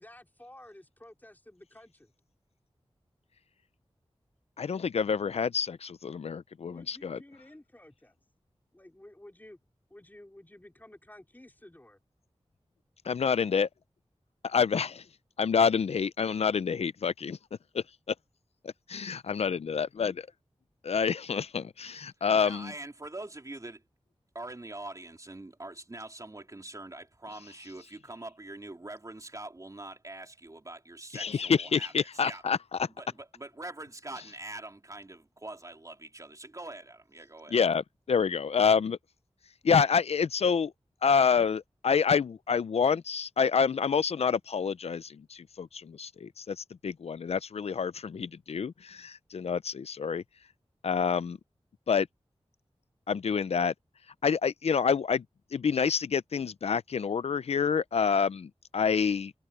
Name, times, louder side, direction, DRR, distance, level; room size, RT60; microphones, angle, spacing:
voice 1, 0.0-2.1 6.6-8.2 8.7-9.6 9.9-12.0, left 1 dB, 15° left, 4.2 m, -52 dB
voice 2, 4.6-7.2 13.0-13.7 14.4-15.1 15.4-17.4 17.7-18.1 18.6-20.3 20.8-22.7 27.6-27.7 31.1-32.9 37.5-39.0 39.6-40.7 41.0-50.2 50.8-51.4 51.9-52.1 53.1-53.7 54.2-55.2 55.5-59.3, left 6 dB, 80° left, 0.4 m, -28 dB
voice 3, 22.4-23.8 24.3-32.4 33.0-37.6, right 2 dB, 35° right, 3.5 m, -44 dB
wide cardioid pair, 75°, 11 cm